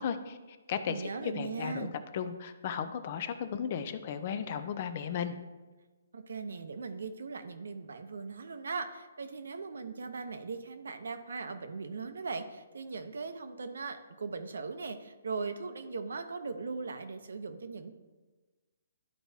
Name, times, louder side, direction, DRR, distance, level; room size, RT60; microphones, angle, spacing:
voice 1, 0.0-1.9 2.1-5.3, left 7 dB, 35° left, 10 dB, 0.4 m, -35 dB
voice 2, 0.9-1.9 6.1-17.9, right 4 dB, 80° right, 8 dB, 0.7 m, -39 dB
11.5 x 4.5 x 2.8 m, 1.2 s
hypercardioid pair, 165°, 0 cm